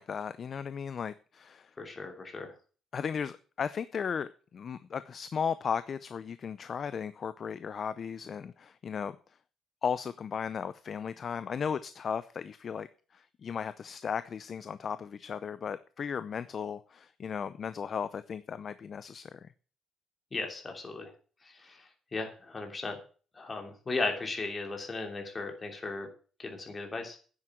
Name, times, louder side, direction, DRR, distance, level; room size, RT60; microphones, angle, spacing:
voice 1, 0.0-1.7 2.9-9.2 9.8-12.9 13.1-19.5, left 7 dB, 40° left, 14 dB, 0.6 m, -36 dB
voice 2, 1.8-2.5 20.3-21.1 21.6-21.8 22.1-22.9 23.4-26.1 26.4-27.2, left 3 dB, 25° left, 3 dB, 3.0 m, -36 dB
9.8 x 7.7 x 7.8 m, 0.40 s
cardioid pair, 135°, 0 cm